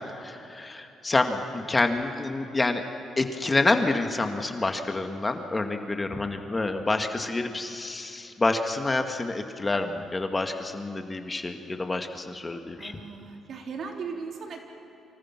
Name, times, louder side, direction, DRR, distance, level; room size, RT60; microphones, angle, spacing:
voice 1, 0.1-2.8 3.2-12.9, left 2 dB, 25° left, 5 dB, 2.1 m, -28 dB
voice 2, 12.8-14.6, right 5 dB, 65° right, 2 dB, 3.7 m, -37 dB
28.5 x 26.0 x 6.2 m, 2.9 s
cardioid pair, 85°, 0 cm